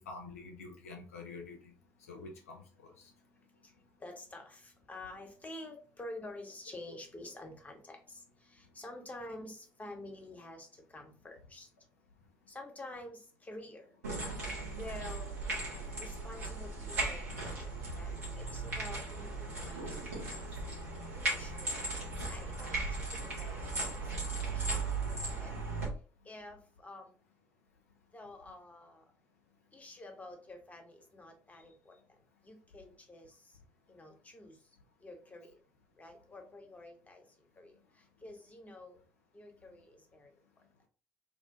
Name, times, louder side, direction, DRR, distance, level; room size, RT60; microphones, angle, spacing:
voice 1, 0.0-1.7 2.1-3.1, left 3 dB, 75° left, 1 dB, 0.4 m, -47 dB
voice 2, 4.0-8.2 8.5-10.7 10.9-11.7 12.5-13.8 14.8-15.3 16.0-20.3 21.2-21.9 22.2-22.7 23.0-24.0 24.4-24.7 25.4-25.6 26.3-27.1 28.1-29.0 29.7-32.0 32.4-33.3 33.9-34.6 35.0-35.5 36.0-37.2 37.6-37.7 38.2-39.0 39.3-40.3, left 2 dB, 20° left, 4 dB, 0.7 m, -49 dB
sound 1, 14.0-25.9, right 3 dB, 80° right, 0.8 m, -37 dB
2.5 x 2.1 x 2.7 m, 0.39 s
figure-of-eight pair, 45°, 8 cm